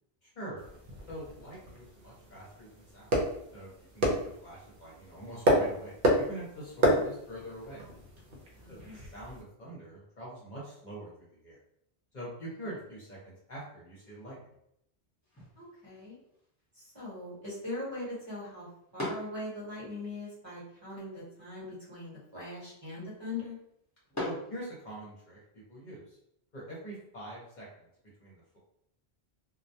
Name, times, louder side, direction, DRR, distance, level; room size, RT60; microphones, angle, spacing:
voice 1, 0.2-0.6 1.1-3.1 3.5-7.8 8.7-11.6 12.1-14.5 24.2-25.4 25.7-26.2 26.5-27.9 28.2-28.6, right 1 dB, 50° left, -6 dB, 0.8 m, -44 dB
sound 1, 0.6-9.4, equal, 60° right, 0.7 m, -31 dB
voice 2, 8.6-9.0 15.6-16.2 16.7-18.7 18.9-23.6, left 2 dB, 25° right, -8 dB, 1.0 m, -41 dB
sound 2, 15.2-25.3, left 1 dB, 15° left, 0.9 m, -45 dB
2.2 x 2.1 x 2.7 m, 0.76 s
omnidirectional pair, 1.1 m